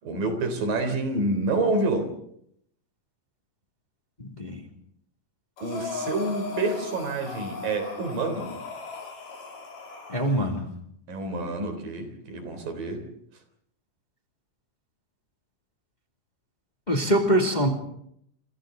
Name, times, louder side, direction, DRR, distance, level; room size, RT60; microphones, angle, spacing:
voice 1, 0.0-2.1 5.6-8.6 11.1-13.0, right 2 dB, 85° right, 7 dB, 5.3 m, -28 dB
voice 2, 4.2-4.6 10.1-10.7 16.9-17.7, right 1 dB, 15° left, 2 dB, 2.1 m, -24 dB
Breathing, 5.6-10.5, left 4 dB, 75° left, 5.3 m, -37 dB
29.0 x 25.5 x 3.9 m, 0.70 s
omnidirectional pair, 3.8 m